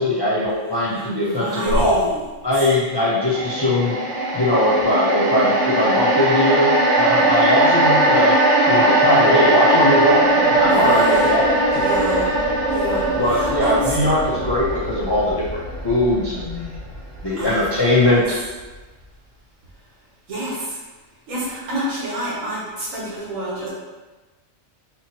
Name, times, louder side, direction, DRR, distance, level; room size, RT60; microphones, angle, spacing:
voice 1, 0.0-2.0 2.4-4.0 4.3-6.7 7.0-8.4 8.7-11.4 11.7-11.8 13.2-16.8 17.2-18.4, left 1 dB, 35° left, -7 dB, 0.4 m, -20 dB
voice 2, 0.9-2.2 10.7-11.4 11.7-12.3 12.7-14.0 17.3-18.2 20.3-20.8 21.3-23.7, right 1 dB, 85° right, -6 dB, 1.5 m, -28 dB
sound 1, 3.3-17.7 18.0-18.2, right 1 dB, 65° right, 1.3 m, -19 dB
5.1 x 3.0 x 2.9 m, 1.2 s
omnidirectional pair, 1.3 m